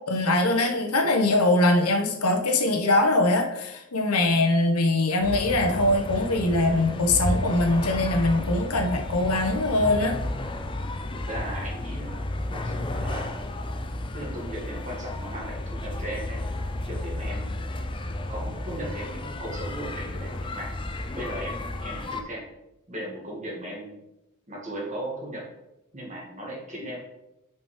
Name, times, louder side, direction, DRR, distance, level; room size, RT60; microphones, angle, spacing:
voice 1, 0.1-10.2, left 2 dB, 90° left, 4 dB, 1.1 m, -22 dB
sound 1, 5.2-22.2, left 1 dB, 20° left, 0.5 m, -32 dB
voice 2, 11.1-12.2 12.5-13.3 14.1-16.4 16.9-17.7 18.3-20.7 21.1-22.4 22.9-24.0 24.5-25.4 25.9-27.0, right 1 dB, 35° right, -3 dB, 2.2 m, -37 dB
5.4 x 5.2 x 5.1 m, 0.88 s
head